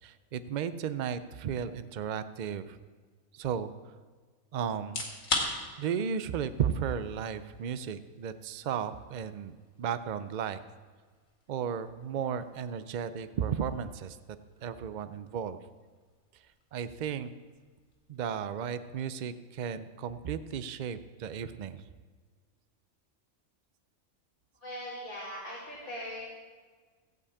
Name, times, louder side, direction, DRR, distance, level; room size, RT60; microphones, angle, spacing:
voice 1, 0.0-2.8 3.3-3.7 4.5-5.1 5.8-10.6 11.5-14.2 14.6-15.6 16.7-17.3 18.1-21.8, right 8 dB, 85° right, 12 dB, 0.4 m, -34 dB
sound 1, 4.8-19.6, left 3 dB, 80° left, 2.4 m, -43 dB
voice 2, 24.6-26.2, equal, 40° left, -7 dB, 2.6 m, -40 dB
16.0 x 5.3 x 8.4 m, 1.5 s
omnidirectional pair, 1.4 m